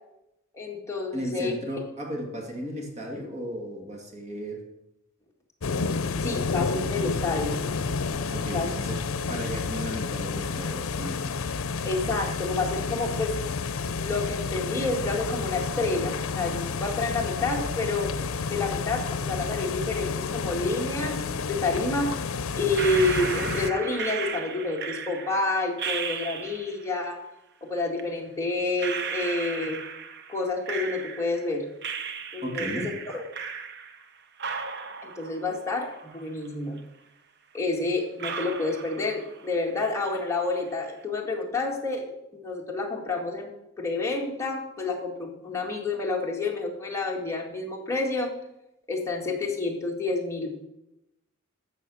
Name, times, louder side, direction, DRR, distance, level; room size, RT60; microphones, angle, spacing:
voice 1, 0.5-1.5 6.2-7.6 8.5-8.7 11.8-13.4 14.0-18.1 18.5-22.1 22.6-27.2 27.6-29.8 30.3-31.7 32.3-33.2 35.0-36.8 37.5-43.5 43.8-48.3 48.9-50.7, left 3 dB, 15° left, -1 dB, 2.0 m, -29 dB
voice 2, 1.1-4.6 8.3-9.0 9.3-11.2 32.4-32.9, equal, 35° right, 1 dB, 2.1 m, -35 dB
sound 1, 5.6-23.7, left 4 dB, 75° left, 0.6 m, -30 dB
sound 2, 22.7-26.9 28.0-28.1 28.8-31.5 31.8-34.1 34.4-36.5 36.8-36.9 37.6-37.7 38.2-39.5 39.8-40.4, right 6 dB, 55° right, 0.9 m, -35 dB
12.5 x 7.4 x 6.3 m, 0.88 s
head